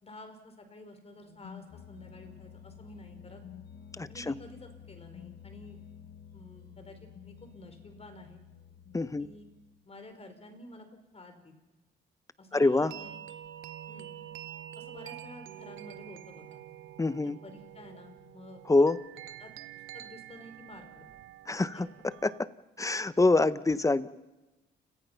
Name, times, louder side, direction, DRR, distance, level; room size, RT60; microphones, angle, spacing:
voice 1, 0.0-3.4 4.1-5.8 6.3-8.4 9.2-9.5 9.8-11.6 12.4-13.1 13.9-14.1 14.8-16.6 17.2-18.9 19.4-19.5 19.9-21.1 21.7-21.8, left 1 dB, 30° left, 7 dB, 4.9 m, -50 dB
sound 1, 1.2-10.0, left 8 dB, 55° left, 1.3 m, -51 dB
voice 2, 4.0-4.4 8.9-9.3 12.5-12.9 17.0-17.4 18.7-19.0 21.5-22.5 22.8-24.1, left 2 dB, 15° left, 15 dB, 0.9 m, -26 dB
sound 2, 12.5-22.4, right 12 dB, 85° right, 1.1 m, -47 dB
29.5 x 22.5 x 5.8 m, 1.1 s
cardioid pair, 90°, 20 cm